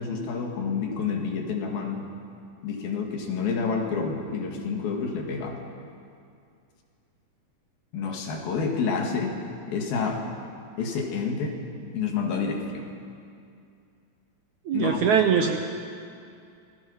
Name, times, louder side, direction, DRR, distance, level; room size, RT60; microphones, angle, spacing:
voice 1, 0.0-2.1 2.6-5.6 7.9-9.4 9.7-10.3 10.8-11.6 11.9-12.9 14.7-15.1 15.4-15.5, left 5 dB, 75° left, 2 dB, 4.0 m, -29 dB
voice 2, 14.7-15.6, right 7 dB, 75° right, 5 dB, 1.8 m, -22 dB
28.0 x 20.5 x 5.8 m, 2.4 s
omnidirectional pair, 4.3 m